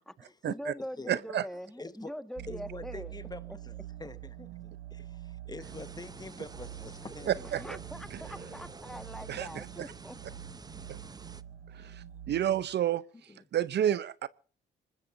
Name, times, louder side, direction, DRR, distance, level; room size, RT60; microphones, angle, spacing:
voice 1, 0.0-3.1 3.5-3.6 7.4-10.2, equal, ahead, 1.6 m, -43 dB
voice 2, 1.1-1.4 7.5-7.6 9.3-9.5 11.8-11.9 12.3-13.0 13.5-14.3, right 11 dB, 60° right, 0.7 m, -29 dB
voice 3, 1.8-2.1 2.5-3.7 4.0-7.5 9.3-9.6 10.8-10.9 11.8-12.0 13.3-13.4, left 3 dB, 20° left, 1.3 m, -46 dB
sound 1, 2.4-12.6, right 12 dB, 85° right, 4.0 m, -46 dB
sound 2, 5.6-11.4, right 4 dB, 20° right, 0.8 m, -48 dB
25.0 x 20.5 x 2.7 m
cardioid pair, 90°, 20 cm